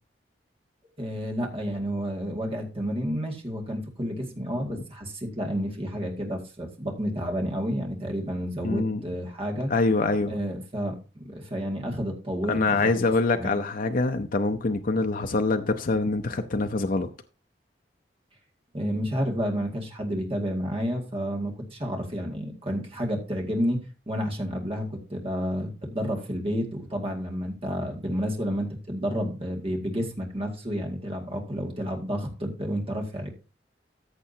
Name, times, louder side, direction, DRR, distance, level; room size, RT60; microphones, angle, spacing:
voice 1, 1.0-9.7 10.3-12.9 13.3-13.6 18.7-33.3, equal, 35° right, 2.1 m, -30 dB
voice 2, 8.6-9.0 9.7-10.3 12.5-17.1, left 3 dB, 50° left, 0.6 m, -25 dB
14.5 x 6.4 x 2.8 m
head